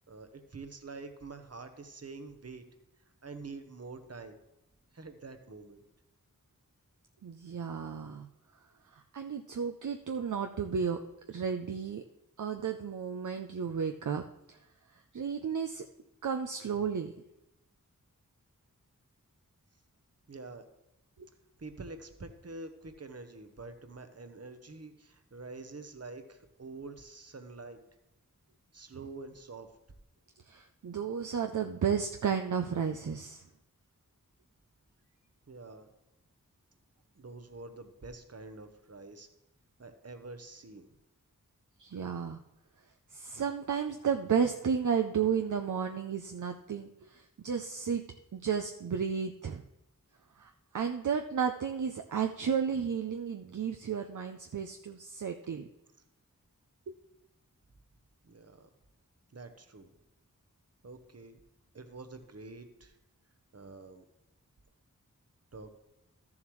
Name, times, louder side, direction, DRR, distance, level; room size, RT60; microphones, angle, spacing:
voice 1, 0.1-2.6 3.2-4.4 4.9-5.8 20.3-20.6 21.6-27.8 28.7-29.7 35.5-35.9 37.2-39.3 39.8-40.9 58.2-58.7 59.3-59.9 60.8-61.4 61.7-63.0 63.5-64.0 65.5-65.7, right 3 dB, 50° right, 8 dB, 0.9 m, -46 dB
voice 2, 7.2-8.3 8.9-11.0 11.3-12.0 12.4-14.2 14.5-14.6 14.9-15.9 16.2-17.1 21.2-21.3 30.5-33.4 41.8-42.4 43.1-48.0 48.3-49.6 50.4-55.7 56.9-57.0, right 7 dB, 65° right, 5 dB, 0.5 m, -33 dB
12.5 x 7.2 x 3.1 m, 0.89 s
wide cardioid pair, 45°, 33 cm